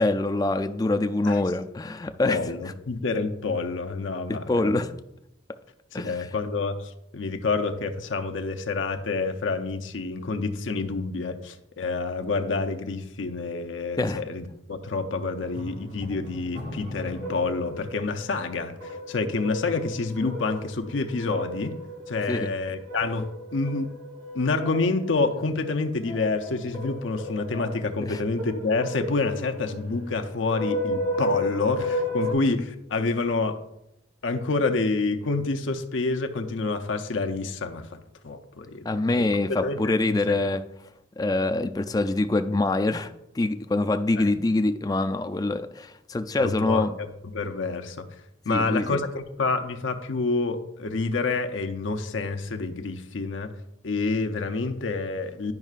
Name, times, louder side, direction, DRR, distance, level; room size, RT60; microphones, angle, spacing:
voice 1, 0.0-2.4 4.3-4.9 5.9-6.3 14.0-14.2 22.3-22.5 28.0-28.2 38.8-40.6 41.2-46.9 48.5-49.0, left 2 dB, 20° left, 9 dB, 0.3 m, -25 dB
voice 2, 2.3-4.8 5.9-21.8 22.1-23.9 24.3-33.6 34.2-38.0 38.2-38.8 39.2-39.3 39.6-40.4 46.4-48.0 48.5-53.5 53.8-55.5, left 3 dB, 90° left, 5 dB, 0.6 m, -28 dB
sound 1, 15.4-32.3, equal, 75° right, 2.5 m, -34 dB
10.5 x 5.4 x 2.4 m, 0.84 s
head